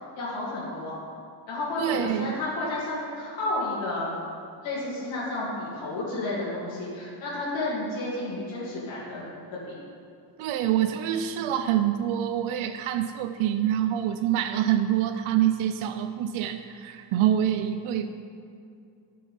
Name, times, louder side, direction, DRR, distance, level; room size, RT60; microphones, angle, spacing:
voice 1, 0.1-1.0 1.5-4.1 4.6-9.2 9.5-9.7, left 2 dB, 70° left, -9 dB, 2.6 m, -31 dB
voice 2, 1.8-2.3 10.4-18.1, right 11 dB, 85° right, 8 dB, 0.6 m, -26 dB
13.0 x 5.6 x 5.4 m, 2.5 s
cardioid pair, 170°, 48 cm